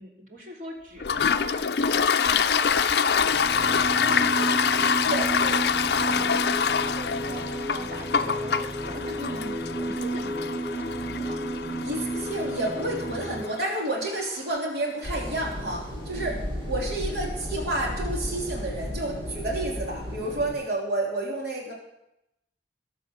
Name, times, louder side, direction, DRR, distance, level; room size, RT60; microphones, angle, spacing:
voice 1, 0.0-7.5 7.7-9.5 9.8-11.5 16.1-16.5, right 1 dB, 45° right, 0 dB, 3.1 m, -42 dB
Toilet flush, 1.0-14.4, left 6 dB, 65° left, 0.5 m, -26 dB
sound 1, 3.2-13.5, right 2 dB, 10° right, 1.2 m, -32 dB
voice 2, 9.0-9.5 11.8-16.3 16.7-21.7, right 2 dB, 60° right, -1 dB, 3.3 m, -30 dB
sound 2, 15.0-20.5, equal, 30° right, 6.7 m, -34 dB
20.5 x 8.0 x 6.4 m, 0.82 s
head